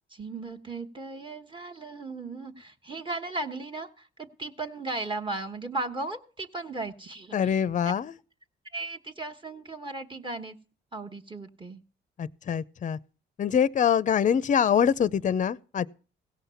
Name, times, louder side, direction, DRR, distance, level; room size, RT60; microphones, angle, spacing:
voice 1, 0.1-8.0 8.7-10.6 10.9-11.8, right 2 dB, 25° right, 1.3 m, -36 dB
voice 2, 7.3-8.1 12.2-13.0 13.4-15.9, left 8 dB, 40° left, 0.6 m, -24 dB
17.0 x 5.7 x 7.0 m
cardioid pair, 90°, 20 cm